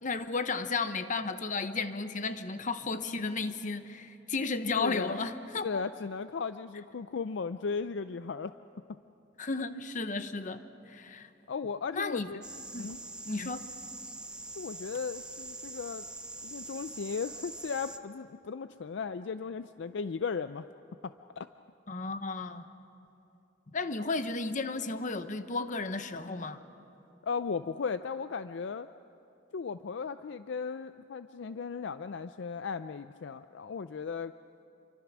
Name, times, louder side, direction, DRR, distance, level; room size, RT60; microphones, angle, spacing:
voice 1, 0.0-5.8 9.4-10.6 10.9-11.3 11.9-12.3 12.7-12.9 13.2-13.6 21.9-22.6 23.7-26.6, left 3 dB, 40° left, 10 dB, 1.0 m, -33 dB
voice 2, 4.8-5.2 5.6-8.5 11.5-12.4 12.7-13.0 13.4-13.5 14.5-16.1 16.4-20.7 21.0-21.5 27.2-28.9 29.5-34.3, left 5 dB, 65° left, 11 dB, 0.4 m, -36 dB
sound 1, 12.4-18.0, right 2 dB, 5° right, 0.7 m, -44 dB
28.0 x 24.5 x 6.1 m, 2.8 s
head